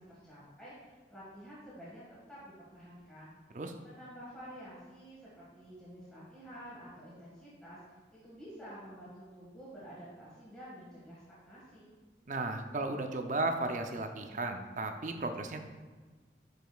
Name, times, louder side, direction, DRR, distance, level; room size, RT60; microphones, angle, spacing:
voice 1, 0.0-2.0 2.3-3.3 3.8-7.8 8.2-11.9, equal, 5° left, -10 dB, 1.6 m, -50 dB
voice 2, 12.3-15.6, right 2 dB, 45° right, 6 dB, 0.5 m, -35 dB
10.0 x 5.1 x 2.3 m, 1.4 s
head